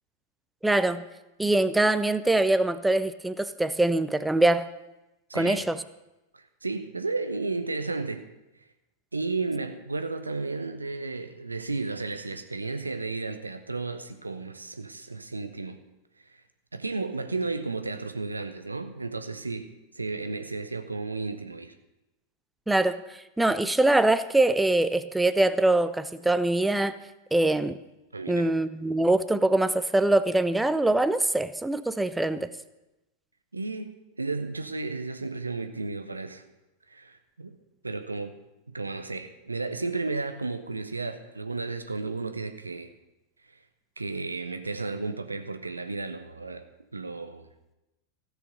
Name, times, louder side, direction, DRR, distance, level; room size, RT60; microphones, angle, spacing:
voice 1, 0.6-1.0 1.4-4.7 5.3-5.8 22.7-23.0 23.4-26.9 27.3-27.8 28.3-32.5, right 2 dB, 5° right, 13 dB, 0.5 m, -23 dB
voice 2, 5.3-5.7 6.3-8.2 9.1-15.8 16.3-16.4 16.7-19.7 19.9-21.7 28.1-28.5 33.5-33.9 34.2-36.4 36.9-37.6 37.8-38.4 38.7-42.9 43.5-43.6 44.0-46.6 46.9-47.5, right 3 dB, 80° right, 8 dB, 0.8 m, -33 dB
15.5 x 6.4 x 5.3 m, 0.98 s
figure-of-eight pair, 90°, 0 cm